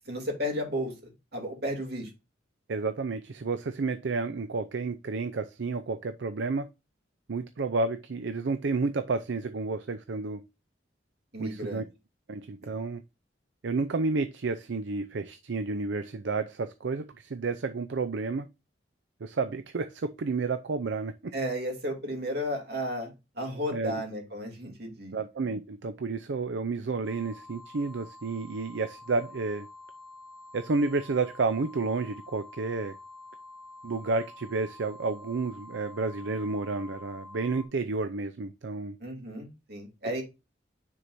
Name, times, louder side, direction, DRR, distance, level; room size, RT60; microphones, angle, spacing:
voice 1, 0.1-2.1 11.3-11.9 12.6-12.7 21.3-25.2 39.0-40.2, equal, 60° right, 2.7 m, -33 dB
voice 2, 2.7-6.7 7.3-10.4 11.4-11.8 12.3-13.0 13.6-18.5 19.2-21.3 23.7-24.0 25.1-29.7 30.5-33.0 33.8-39.0, right 3 dB, 75° right, 0.5 m, -31 dB
sound 1, 27.0-37.7, left 2 dB, ahead, 1.5 m, -48 dB
9.8 x 4.6 x 2.6 m
head